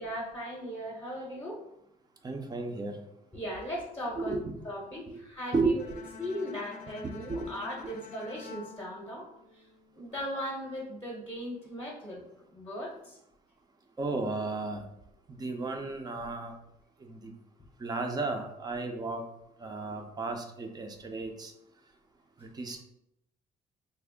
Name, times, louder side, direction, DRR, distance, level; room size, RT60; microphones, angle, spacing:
voice 1, 0.0-1.6 3.3-4.4 4.6-5.9 6.2-9.3 9.5-9.7 10.0-12.2 12.5-13.2, equal, 15° left, -3 dB, 0.8 m, -38 dB
voice 2, 2.2-3.0 4.2-4.4 5.5-6.0 7.3-7.5 14.0-14.8 15.3-16.5 17.0-17.3 17.8-19.2 19.6-21.5 22.4-22.8, right 3 dB, 25° right, 4 dB, 0.5 m, -33 dB
Bowed string instrument, 5.8-9.9, left 4 dB, 70° left, 0.5 m, -49 dB
3.4 x 2.0 x 3.6 m, 0.79 s
cardioid pair, 110°, 17 cm